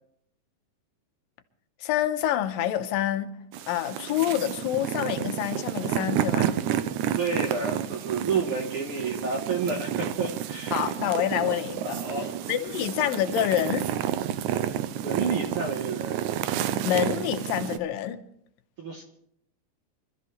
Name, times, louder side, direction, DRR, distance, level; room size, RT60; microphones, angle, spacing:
voice 1, 1.8-3.3 3.7-6.5 10.7-12.0 12.5-13.9 16.8-18.2, left 11 dB, 85° left, 2.6 m, -27 dB
sound 1, 3.5-17.8, right 10 dB, 80° right, 1.8 m, -30 dB
voice 2, 7.2-10.9 11.8-12.4 15.0-16.3 18.8-19.0, right 4 dB, 55° right, 1.6 m, -30 dB
25.5 x 13.0 x 3.2 m
omnidirectional pair, 4.0 m